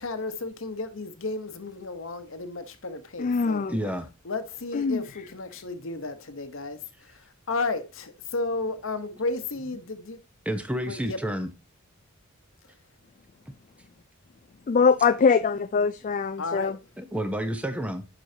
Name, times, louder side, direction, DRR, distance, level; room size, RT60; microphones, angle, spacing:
voice 1, 0.0-3.6 4.2-6.8 7.5-10.2 10.9-11.2 16.4-16.7, left 3 dB, 65° left, 1.0 m, -33 dB
voice 2, 3.2-3.8 4.7-5.0 14.7-16.8, left 5 dB, 35° left, 0.3 m, -23 dB
voice 3, 3.7-4.1 10.4-11.5 13.5-13.6 17.0-18.0, equal, 5° right, 0.8 m, -30 dB
7.7 x 6.2 x 2.7 m
head